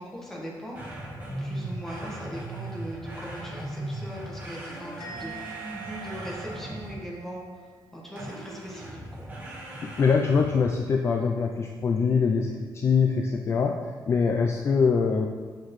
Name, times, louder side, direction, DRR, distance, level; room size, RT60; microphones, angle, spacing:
voice 1, 0.0-7.4 7.9-9.0, equal, 5° left, -5 dB, 1.4 m, -40 dB
sound 1, 0.7-7.2 8.2-10.7, right 1 dB, 20° right, 1.4 m, -38 dB
Musical instrument, 5.0-8.4 8.7-9.1, right 7 dB, 80° left, 1.2 m, -45 dB
voice 2, 10.0-13.8 14.1-15.3, left 5 dB, 35° left, 3 dB, 0.4 m, -23 dB
7.5 x 6.6 x 3.1 m, 1.5 s
cardioid pair, 170°, 8 cm